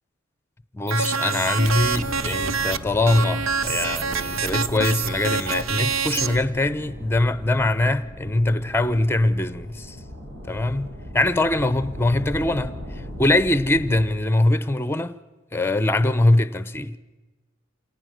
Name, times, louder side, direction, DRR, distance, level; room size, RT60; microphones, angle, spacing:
voice 1, 0.7-10.0 10.5-12.7 13.2-15.1 15.5-17.0, left 2 dB, 10° left, 0.6 m, -22 dB
sound 1, 0.9-2.8 3.1-6.4, right 5 dB, 85° right, 0.7 m, -26 dB
Trumpet, 1.6-6.9, right 1 dB, 15° right, 6.9 m, -52 dB
sound 2, 1.6-14.1, left 1 dB, 70° right, 5.8 m, -38 dB
28.0 x 18.5 x 6.4 m
head